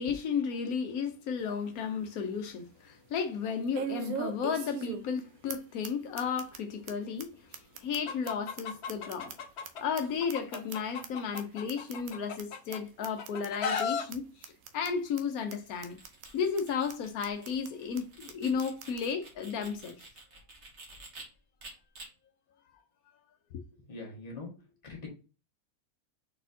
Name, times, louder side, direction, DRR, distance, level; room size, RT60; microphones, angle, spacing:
voice 1, 0.0-9.3 9.8-16.0 16.3-20.0, left 6 dB, 80° left, 1.1 m, -33 dB
sound 1, 1.4-1.5 2.0-2.1 3.7-5.2 5.5-5.6 5.8-5.9 6.2-6.6 6.9-7.0 7.2-7.3 7.5-9.7 10.0-11.1 11.4-11.5 11.7-12.1 12.4-12.5 12.7-12.8 13.0-13.5 13.8-13.9 14.1-14.2 14.4-14.9 15.2-15.3 15.5-15.6 15.8-16.3 16.6-16.7 16.9-17.0 17.2-17.7 18.0-18.1 18.3-18.4 18.6-19.0, right 7 dB, 70° right, 1.0 m, -40 dB
Chicken rooster, 8.1-9.8 10.2-12.8 13.2-14.0, left 6 dB, 60° left, 0.8 m, -35 dB
sound 2, 15.7-21.2 21.6-22.1, right 2 dB, 50° right, 1.7 m, -50 dB
voice 2, 23.9-24.5 24.8-25.1, left 3 dB, 30° left, 1.4 m, -42 dB
4.4 x 4.1 x 2.7 m
omnidirectional pair, 1.5 m